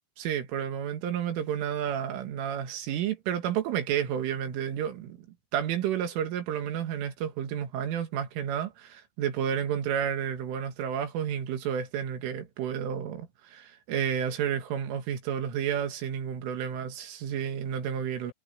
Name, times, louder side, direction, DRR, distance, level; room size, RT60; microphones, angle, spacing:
voice 1, 0.2-5.2 5.5-18.3, right 9 dB, 90° right, 4.8 m, -31 dB
omnidirectional pair, 5.5 m